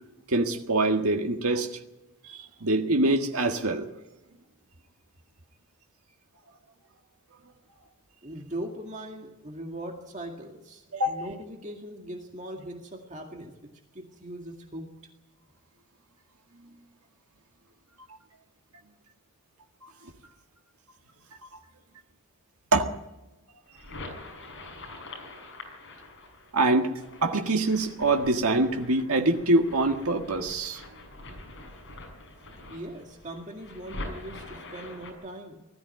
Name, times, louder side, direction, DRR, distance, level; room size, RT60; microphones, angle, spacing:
voice 1, 0.3-1.8 2.2-3.9 10.9-11.2 16.6-16.7 19.8-20.1 22.7-23.0 26.5-30.8, right 2 dB, 75° right, 1.7 m, -25 dB
voice 2, 8.2-13.5 13.9-14.9 32.7-35.5, right 1 dB, 35° right, 2.0 m, -40 dB
sound 1, 23.7-35.1, left 2 dB, 55° left, 5.9 m, -44 dB
20.5 x 14.0 x 9.5 m
head